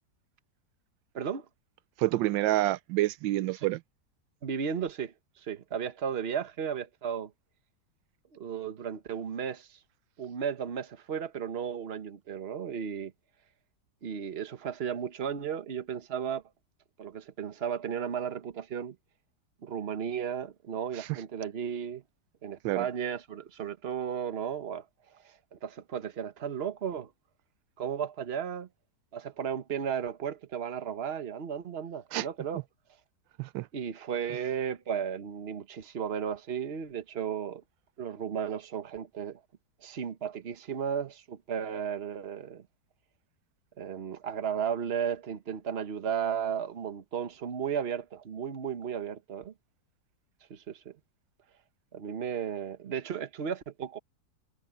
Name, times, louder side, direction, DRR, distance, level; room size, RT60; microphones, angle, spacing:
voice 1, 1.1-1.4 3.5-3.7 4.4-7.3 8.3-9.8 10.2-13.1 14.0-16.4 17.0-18.9 19.6-22.0 22.4-24.9 25.2-27.1 27.8-28.7 29.1-32.6 33.7-37.6 38.0-39.4 39.8-42.6 43.8-49.5 50.5-50.9 51.9-54.0, right 8 dB, 40° right, 1.2 m, -34 dB
voice 2, 2.0-3.8 21.0-21.1 22.6-22.9 32.1-32.3 33.4-33.7, right 16 dB, 85° right, 1.3 m, -28 dB
omnidirectional pair, 2.0 m